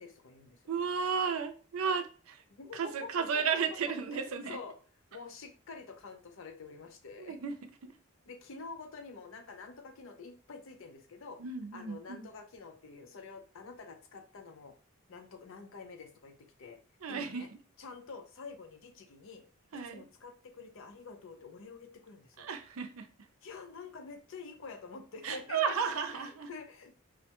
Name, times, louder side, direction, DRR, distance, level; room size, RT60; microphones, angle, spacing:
voice 1, 0.0-0.6 2.6-3.4 4.1-4.8 5.1-7.4 8.3-11.4 11.7-14.7 15.1-16.3 16.6-16.8 17.1-17.5 17.8-19.4 19.9-22.5 23.4-25.8 26.1-26.9, left 4 dB, 65° left, 6 dB, 0.6 m, -47 dB
voice 2, 0.7-2.4 2.7-4.6 7.2-7.5 11.4-12.3 17.0-17.4 19.7-20.0 22.4-23.1 25.2-26.5, right 6 dB, 80° right, 9 dB, 0.5 m, -33 dB
4.8 x 2.1 x 2.9 m, 0.38 s
head